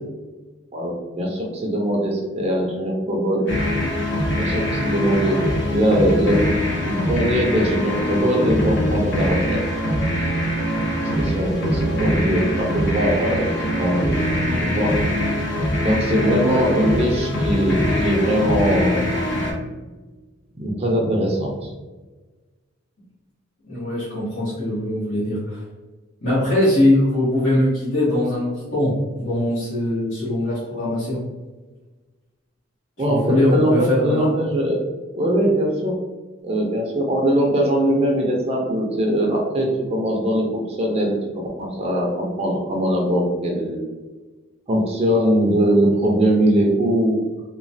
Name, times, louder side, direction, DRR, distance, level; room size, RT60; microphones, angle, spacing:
voice 1, 0.7-3.5 4.4-5.4 5.7-6.4 6.7-9.6 11.0-14.2 14.6-14.9 15.8-19.0 20.6-21.7 33.0-34.9 35.1-35.9 36.4-43.8 44.7-47.2, right 1 dB, 30° right, -1 dB, 0.4 m, -21 dB
sound 1, 3.5-19.5, left 1 dB, 60° left, 0.7 m, -23 dB
voice 2, 23.7-25.6 26.2-31.2 33.1-34.3, left 1 dB, 80° left, -11 dB, 1.2 m, -21 dB
3.0 x 2.2 x 2.6 m, 1.2 s
head